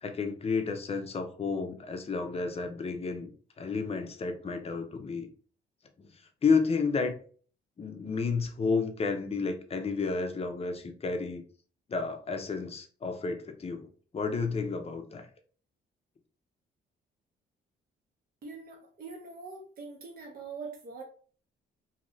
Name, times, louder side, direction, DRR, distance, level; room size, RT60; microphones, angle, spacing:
voice 1, 0.0-3.3 3.6-5.3 6.4-7.1 7.8-11.4 11.9-13.9 14.1-15.3, left 4 dB, 30° left, 6 dB, 0.6 m, -31 dB
voice 2, 18.4-21.0, right 4 dB, 50° right, 0 dB, 0.8 m, -43 dB
2.8 x 2.6 x 3.1 m, 0.43 s
cardioid pair, 90°, 20 cm